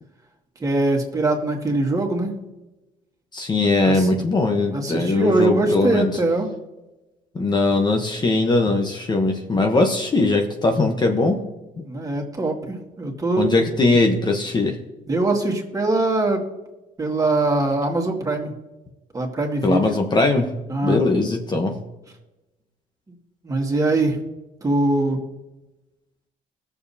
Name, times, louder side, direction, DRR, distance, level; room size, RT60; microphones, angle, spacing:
voice 1, 0.6-2.4 3.8-4.1 4.7-6.5 11.8-13.5 15.1-16.5 17.0-18.5 19.1-19.8 20.7-21.0 23.4-24.2 24.6-25.2, right 2 dB, 25° right, 1 dB, 2.0 m, -22 dB
voice 2, 3.3-6.1 7.3-11.4 13.4-14.8 19.6-20.5 20.8-21.8, left 2 dB, 30° left, 4 dB, 1.0 m, -20 dB
20.5 x 7.0 x 2.8 m, 1.0 s
cardioid pair, 95°, 15 cm